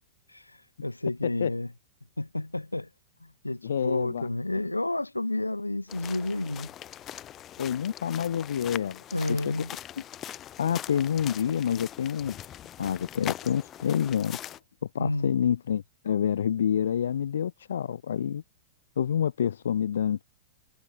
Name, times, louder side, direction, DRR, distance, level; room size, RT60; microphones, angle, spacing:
voice 1, 0.3-1.7 2.2-2.9 3.4-6.7 9.1-9.7 15.0-15.3, left 2 dB, 85° left, 2.1 m, -30 dB
voice 2, 3.6-4.6 7.6-9.0 9.3-9.6 10.6-12.4 12.8-14.4 14.9-18.4 19.0-20.2, left 8 dB, 65° left, 0.4 m, -28 dB
sound 1, 5.9-14.6, left 11 dB, 25° left, 0.8 m, -41 dB
figure-of-eight pair, 100°, 0 cm